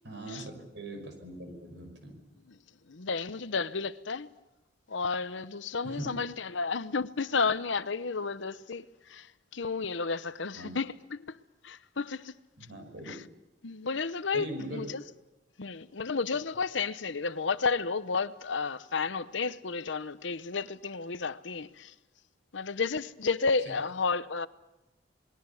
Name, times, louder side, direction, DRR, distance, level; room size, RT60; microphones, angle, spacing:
voice 1, 0.0-2.2 5.8-6.2 10.5-10.7 12.6-13.1 14.3-14.9 23.7-23.8, right 1 dB, 65° right, 5.7 m, -41 dB
voice 2, 2.9-4.3 4.9-9.3 9.5-11.2 11.6-12.3 13.1-13.2 13.6-14.5 14.7-15.0 15.6-21.9 22.5-24.5, left 4 dB, 75° left, 0.9 m, -32 dB
27.5 x 21.0 x 7.1 m
head